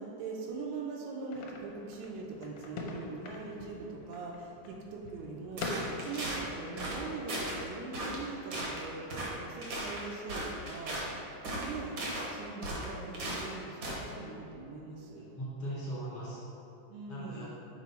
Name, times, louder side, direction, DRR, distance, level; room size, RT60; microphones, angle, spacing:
voice 1, 0.0-9.1 9.3-11.0 11.6-12.0 12.3-15.3 16.9-17.5, right 3 dB, 80° right, -1 dB, 2.0 m, -42 dB
sound 1, 1.3-6.8, left 3 dB, 80° left, 2.0 m, -43 dB
sound 2, 5.6-6.4 6.8-7.0 7.3-7.6 7.9-8.2 8.5-8.8 9.1-9.3 9.6-11.1 11.4-12.3 12.6-13.5 13.8-14.0, right 1 dB, 60° right, 1.3 m, -36 dB
voice 2, 15.1-16.4 17.1-17.5, right 1 dB, 55° left, -7 dB, 2.2 m, -40 dB
6.2 x 4.6 x 4.2 m, 2.8 s
omnidirectional pair, 3.5 m